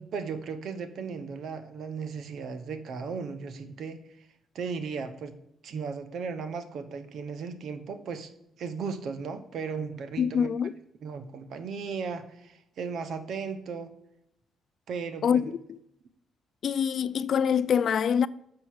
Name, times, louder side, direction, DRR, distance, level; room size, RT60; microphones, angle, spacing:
voice 1, 0.0-4.0 4.5-5.4 5.6-8.3 8.6-10.5 11.0-13.9 14.9-15.5, right 5 dB, 65° right, 1.0 m, -36 dB
voice 2, 10.2-10.7 15.2-15.4 15.7-15.8 16.6-18.3, left 7 dB, 60° left, 0.3 m, -25 dB
6.7 x 5.6 x 6.3 m
cardioid pair, 90°, 0 cm